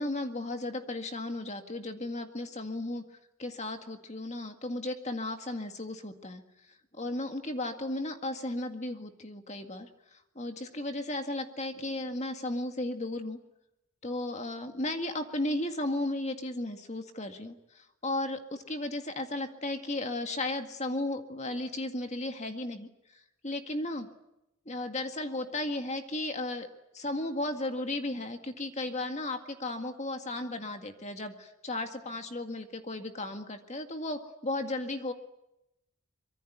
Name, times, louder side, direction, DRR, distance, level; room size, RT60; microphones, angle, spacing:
voice 1, 0.0-3.0 3.4-6.4 7.0-9.9 10.4-13.4 14.0-22.9 23.4-24.1 24.7-26.7 26.9-35.1, left 2 dB, 30° left, 6 dB, 1.9 m, -35 dB
25.0 x 23.0 x 9.4 m, 0.88 s
head